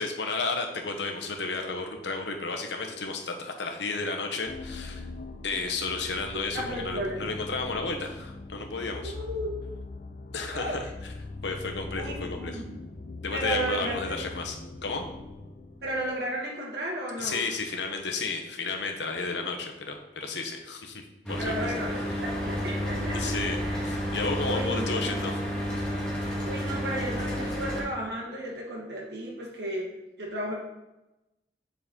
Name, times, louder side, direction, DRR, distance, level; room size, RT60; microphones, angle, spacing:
voice 1, 0.0-5.1 5.4-9.1 10.3-10.8 11.4-12.6 13.2-15.1 17.2-21.0 21.3-21.7 23.1-23.6 23.8-25.4, left 3 dB, 85° left, 3 dB, 1.0 m, -32 dB
sound 1, 4.5-16.3, left 2 dB, 50° left, 0.5 m, -41 dB
voice 2, 6.5-7.4 9.0-9.5 10.5-10.9 11.9-12.8 13.3-14.0 15.8-17.5 21.4-23.8 24.4-25.2 26.4-29.9 30.2-30.5, right 1 dB, 70° right, -3 dB, 1.3 m, -34 dB
Mechanical fan, 21.3-27.8, equal, 5° left, 1.6 m, -31 dB
7.3 x 4.2 x 3.7 m, 0.98 s
head